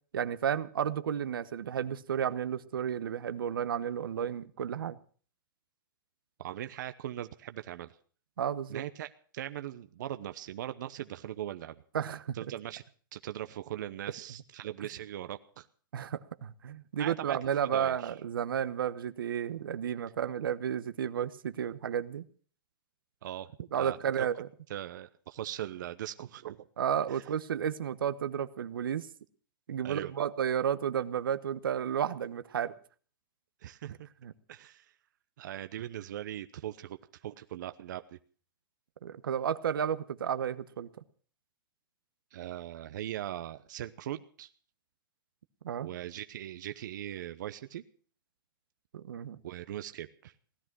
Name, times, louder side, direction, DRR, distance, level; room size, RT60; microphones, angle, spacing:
voice 1, 0.1-5.0 8.4-8.8 11.9-12.4 15.9-22.2 23.7-24.5 26.8-29.1 29.7-32.7 34.2-34.3 39.0-40.9 45.6-45.9 48.9-49.4, right 9 dB, 85° right, 13 dB, 1.1 m, -32 dB
voice 2, 6.4-7.9 8.7-11.8 12.3-12.8 13.1-15.7 17.0-18.1 23.2-23.5 23.7-24.3 24.7-26.7 27.1-27.2 29.8-30.1 33.6-34.0 34.5-34.9 35.4-37.0 37.2-38.2 42.3-44.5 45.8-47.8 49.4-50.3, right 12 dB, 60° right, 10 dB, 0.9 m, -40 dB
17.0 x 12.5 x 6.1 m, 0.44 s
hypercardioid pair, 155°, 11 cm